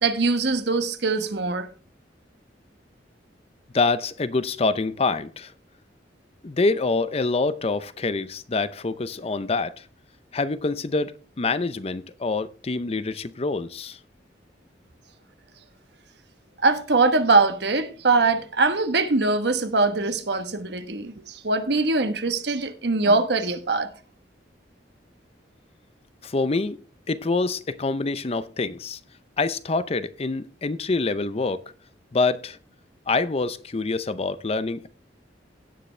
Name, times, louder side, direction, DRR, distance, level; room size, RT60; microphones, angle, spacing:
voice 1, 0.0-1.7 16.6-23.9, right 3 dB, 65° right, 1.2 m, -22 dB
voice 2, 3.7-5.5 6.4-9.8 10.3-14.0 26.2-26.8 27.1-29.0 29.4-31.6 32.1-32.6 33.1-34.9, left 3 dB, 35° left, 0.6 m, -26 dB
17.0 x 6.8 x 3.3 m
head